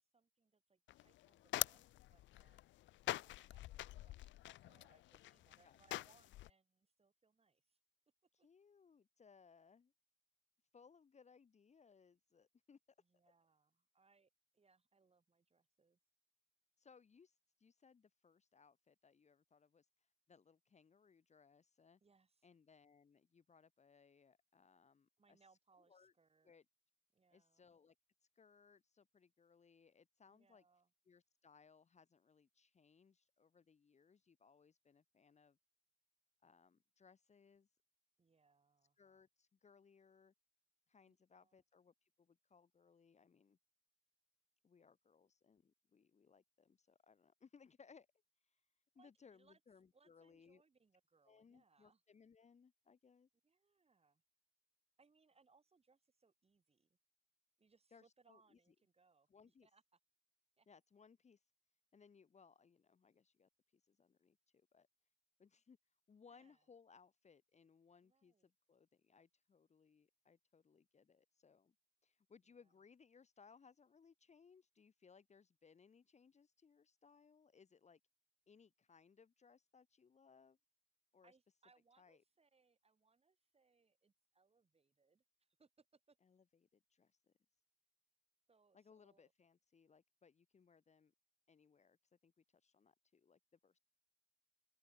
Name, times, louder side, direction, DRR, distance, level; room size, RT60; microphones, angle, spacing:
voice 1, 0.0-2.6 3.2-7.8 8.4-8.5 13.0-16.0 22.0-22.5 25.2-26.6 27.1-27.7 30.3-30.9 38.2-39.0 41.1-41.6 48.9-49.6 49.9-52.0 53.4-54.2 55.0-57.0 57.6-60.0 60.6-60.7 66.3-66.7 68.0-68.5 72.5-72.7 81.2-86.2 88.5-89.3, right 4 dB, 30° right, 6.5 m, -75 dB
sound 1, 0.9-6.5, left 16 dB, 70° left, 0.4 m, -45 dB
voice 2, 8.3-9.9 10.7-12.8 16.8-19.9 20.3-22.0 22.4-25.4 25.9-26.1 26.4-26.6 27.3-27.9 28.3-30.6 31.1-35.6 36.4-37.7 39.0-40.3 40.9-43.6 44.6-48.1 48.4-48.6 48.9-50.6 51.2-53.3 57.9-58.6 59.3-59.7 60.7-61.4 61.9-64.9 65.4-65.8 66.1-71.7 72.0-78.0 78.5-80.6 81.1-81.3 82.0-82.2 86.2-86.4 86.7-87.3 88.7-91.1 91.5-92.0 92.2-93.8, left 5 dB, 35° left, 1.4 m, -67 dB
open air
cardioid pair, 90°, 20 cm